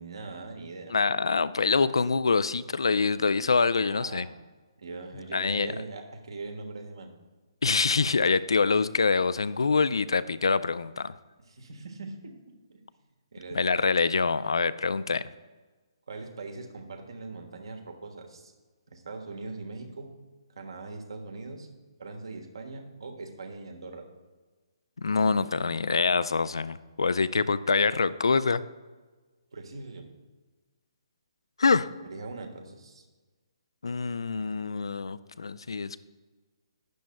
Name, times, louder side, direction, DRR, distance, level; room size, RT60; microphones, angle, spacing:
voice 1, 0.0-0.9 3.8-4.3 4.8-7.1 11.5-12.8 13.3-13.6 16.1-18.5 18.9-20.1 20.5-21.7 22.0-24.1 29.5-30.1 32.0-33.0, right 3 dB, 70° right, 4 dB, 1.3 m, -41 dB
voice 2, 0.9-4.3 5.3-5.7 7.6-11.1 13.5-15.3 25.0-28.6 31.6-31.9 33.8-36.0, left 4 dB, 75° left, 16 dB, 0.4 m, -25 dB
11.5 x 9.3 x 2.2 m, 1.3 s
figure-of-eight pair, 140°, 3 cm